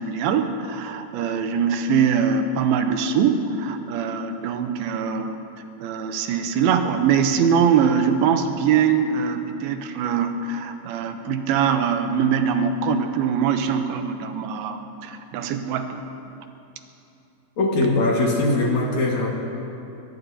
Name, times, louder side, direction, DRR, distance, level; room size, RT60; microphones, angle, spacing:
voice 1, 0.0-5.4 5.8-16.0, right 7 dB, 85° right, 7 dB, 2.7 m, -22 dB
voice 2, 17.6-19.3, left 2 dB, 55° left, -2 dB, 2.8 m, -21 dB
22.5 x 20.0 x 2.8 m, 2.8 s
omnidirectional pair, 4.4 m